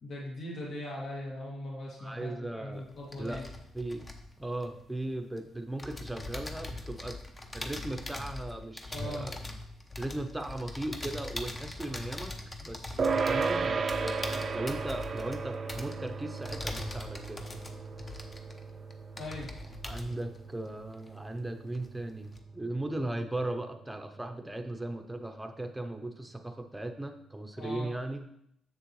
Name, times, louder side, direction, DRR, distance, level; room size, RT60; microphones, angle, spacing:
voice 1, 0.0-3.4 8.9-9.3 19.2-19.5 27.6-27.9, left 1 dB, 60° left, -4 dB, 2.2 m, -40 dB
voice 2, 2.0-2.9 3.1-3.4 3.7-4.1 4.4-7.2 7.5-9.4 10.0-17.6 19.8-28.2, right 1 dB, 10° right, 5 dB, 0.8 m, -37 dB
sound 1, 2.7-5.4 5.8-21.5 21.7-22.4, left 2 dB, 25° left, 0.9 m, -42 dB
sound 2, 13.0-22.7, right 4 dB, 45° right, 0.5 m, -35 dB
7.2 x 6.6 x 3.2 m, 0.73 s
cardioid pair, 90°, 0 cm